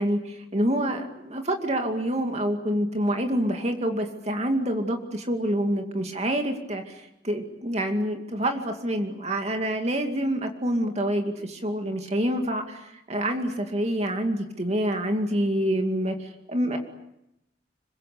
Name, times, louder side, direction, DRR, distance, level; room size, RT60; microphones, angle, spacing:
voice 1, 0.0-16.8, right 1 dB, 40° right, 4 dB, 2.4 m, -27 dB
26.5 x 23.5 x 8.5 m, 0.85 s
head